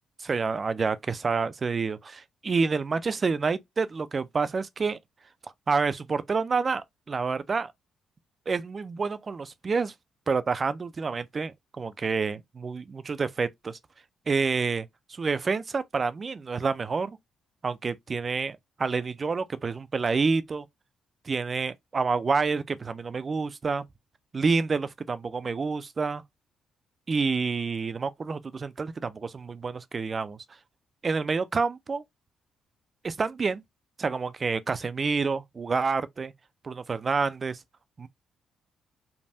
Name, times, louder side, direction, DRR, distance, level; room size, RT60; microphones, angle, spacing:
voice 1, 0.2-5.0 5.7-7.7 8.5-9.9 10.3-13.8 14.3-14.9 15.2-17.2 17.6-20.7 21.3-23.9 24.3-26.2 27.1-30.4 31.0-32.0 33.0-33.6 34.0-36.3 36.6-37.6 38.0-38.1, right 4 dB, 35° right, 0.3 m, -28 dB
3.2 x 2.2 x 2.6 m
cardioid pair, 90°, 0 cm